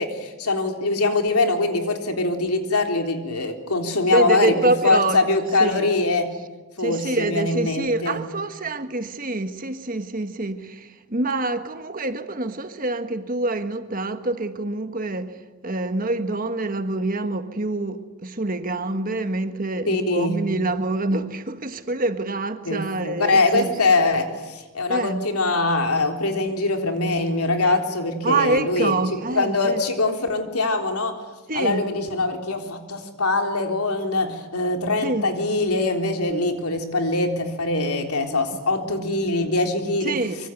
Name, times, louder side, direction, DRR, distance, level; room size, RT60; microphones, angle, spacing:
voice 1, 0.0-4.6 4.8-6.3 6.8-8.2 19.9-20.4 22.7-28.9 29.3-31.2 31.5-40.2, left 2 dB, 80° left, 3.7 m, -23 dB
voice 2, 4.1-5.2 5.6-5.9 6.8-23.8 24.9-25.3 28.2-29.8 31.5-31.9 35.0-35.2 40.0-40.4, right 2 dB, 40° right, 1.5 m, -26 dB
25.0 x 24.0 x 9.2 m
head